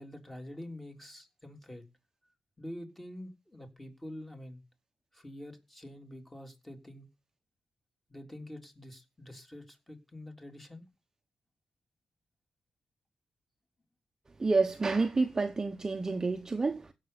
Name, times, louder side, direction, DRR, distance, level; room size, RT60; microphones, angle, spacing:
voice 1, 0.0-1.8 2.6-4.6 5.1-7.1 8.1-10.8, left 1 dB, 10° left, 3.5 m, -46 dB
voice 2, 14.4-16.9, right 3 dB, 25° right, 1.1 m, -29 dB
16.5 x 6.8 x 7.0 m
wide cardioid pair, 125°, 2 cm